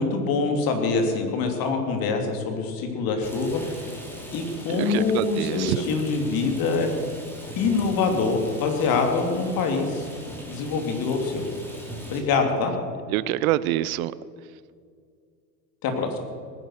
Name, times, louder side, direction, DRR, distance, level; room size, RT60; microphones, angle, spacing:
voice 1, 0.0-3.6 4.3-6.9 7.6-10.0 10.5-11.5 12.1-12.7 15.8-16.1, left 4 dB, 45° left, 4 dB, 3.2 m, -24 dB
Rain, 3.2-12.2, equal, 5° left, 4.0 m, -40 dB
voice 2, 4.7-5.8 13.1-14.1, right 15 dB, 60° right, 18 dB, 0.8 m, -26 dB
19.0 x 10.5 x 6.5 m, 2.2 s
hypercardioid pair, 100°, 49 cm